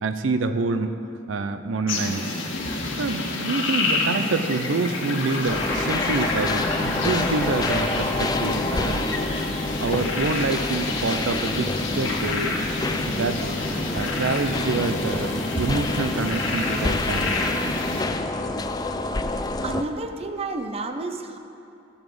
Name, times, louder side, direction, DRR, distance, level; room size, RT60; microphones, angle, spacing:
voice 1, 0.0-1.0 1.3-2.4 3.0-9.3 9.8-12.6 13.0-13.5 13.9-17.4, right 3 dB, 85° right, 9 dB, 0.5 m, -27 dB
sound 1, 1.9-18.0, left 2 dB, 85° left, 1.7 m, -28 dB
sound 2, 5.5-19.8, left 2 dB, 20° left, 0.4 m, -28 dB
voice 2, 19.6-21.4, right 3 dB, 30° right, 6 dB, 0.6 m, -30 dB
14.0 x 7.2 x 5.3 m, 2.6 s
head